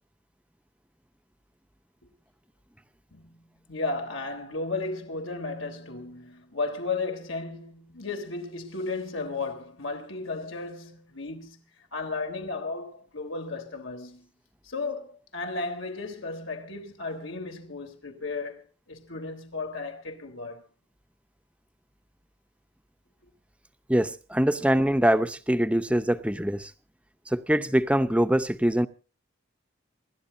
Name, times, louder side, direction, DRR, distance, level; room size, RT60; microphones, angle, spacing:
voice 1, 3.1-14.3 14.6-20.6, left 3 dB, 80° left, 3.5 m, -34 dB
voice 2, 23.9-26.7 27.3-28.9, equal, 5° right, 0.8 m, -23 dB
27.5 x 12.5 x 2.7 m
head